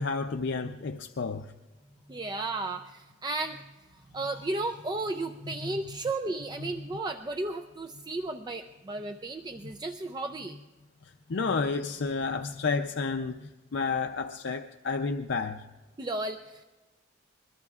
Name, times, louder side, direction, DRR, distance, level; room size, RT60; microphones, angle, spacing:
voice 1, 0.0-1.5 5.5-5.8 6.6-6.7 11.0-15.6, left 4 dB, 65° left, 0.5 m, -31 dB
voice 2, 2.1-3.6 4.1-10.6 16.0-16.6, right 2 dB, 20° right, 0.4 m, -34 dB
25.0 x 22.0 x 2.4 m
head